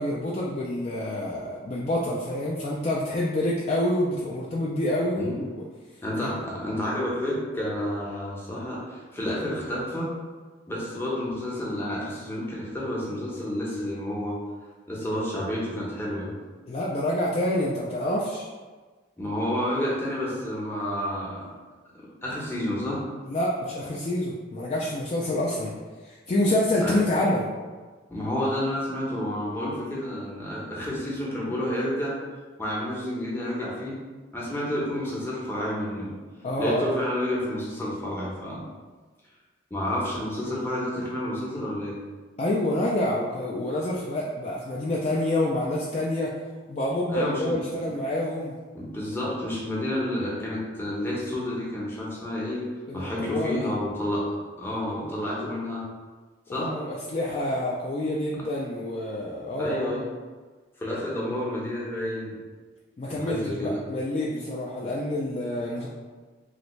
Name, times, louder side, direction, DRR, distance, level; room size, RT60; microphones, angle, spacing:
voice 1, 0.0-5.6 6.2-6.3 16.7-18.5 23.3-25.7 26.0-27.5 36.4-36.9 42.4-46.3 46.7-48.5 52.9-53.7 56.5-60.0 63.0-65.9, left 1 dB, 35° left, -5 dB, 0.3 m, -27 dB
voice 2, 5.2-5.5 6.0-10.1 10.7-14.4 14.9-16.3 19.2-21.5 21.9-23.0 26.8-27.0 28.1-32.2 32.6-34.0 34.3-36.1 36.6-38.6 39.7-42.0 47.1-47.5 48.7-52.7 52.9-55.8 56.5-56.7 59.6-60.1 60.8-62.4 63.1-63.8, left 1 dB, 10° left, -6 dB, 0.7 m, -30 dB
3.2 x 2.5 x 3.1 m, 1.4 s
head